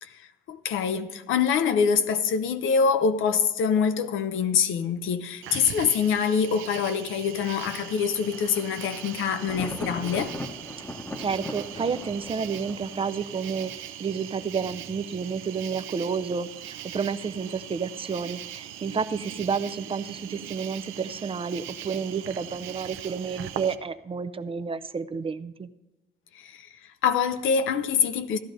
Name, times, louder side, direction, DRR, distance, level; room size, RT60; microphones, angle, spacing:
voice 1, 0.0-10.3 26.3-28.4, left 6 dB, 80° left, 0.7 m, -25 dB
Cricket, 5.4-23.7, right 11 dB, 85° right, 0.5 m, -40 dB
Thunder, 7.4-13.8, left 1 dB, 10° left, 0.9 m, -40 dB
voice 2, 11.2-25.7, right 5 dB, 30° right, 0.4 m, -30 dB
15.5 x 11.5 x 2.6 m
cardioid pair, 90°, 20 cm